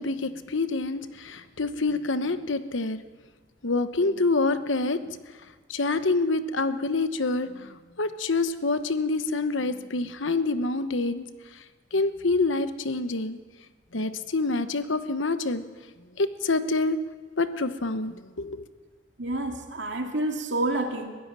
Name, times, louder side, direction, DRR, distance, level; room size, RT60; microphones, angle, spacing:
voice 1, 0.0-3.0 3.6-5.0 5.7-11.3 11.9-13.4 13.9-15.6 16.2-17.0 17.4-18.6, left 3 dB, 70° left, 11 dB, 1.1 m, -27 dB
voice 2, 19.2-21.1, right 2 dB, 65° right, 3 dB, 2.5 m, -28 dB
22.0 x 16.0 x 7.5 m, 1.3 s
head